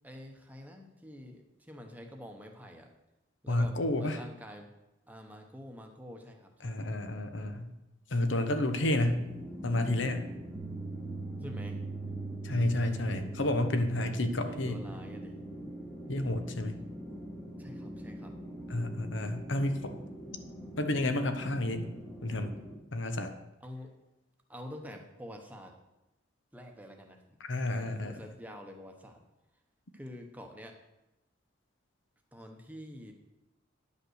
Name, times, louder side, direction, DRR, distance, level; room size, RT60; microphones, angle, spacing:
voice 1, 0.0-2.9 3.4-4.7 5.1-6.8 11.4-11.8 14.0-15.3 17.6-18.3 23.6-23.9 24.5-25.8 26.5-27.2 27.6-29.2 29.9-30.8 32.3-33.1, equal, 10° right, 3 dB, 1.0 m, -47 dB
voice 2, 3.5-4.2 6.6-7.7 8.1-9.3 9.6-10.3 12.4-14.8 16.1-16.8 18.7-19.9 20.8-21.9 22.2-22.5 22.9-23.3 27.4-28.2, left 1 dB, 65° left, 7 dB, 0.9 m, -30 dB
sound 1, 8.9-22.8, equal, 10° left, 1.2 m, -44 dB
sound 2, 10.5-15.5, right 4 dB, 65° right, 1.1 m, -42 dB
10.5 x 5.4 x 6.4 m, 0.96 s
head